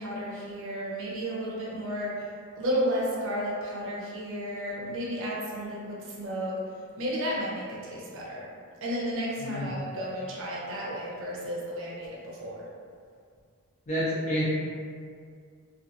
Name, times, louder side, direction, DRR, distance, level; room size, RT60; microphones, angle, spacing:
voice 1, 0.0-2.3 2.5-6.6 7.0-8.5 8.8-12.7, equal, 65° right, -5 dB, 0.6 m, -32 dB
voice 2, 13.9-14.4, equal, 35° left, -9 dB, 0.5 m, -28 dB
2.4 x 2.4 x 2.7 m, 2.2 s
head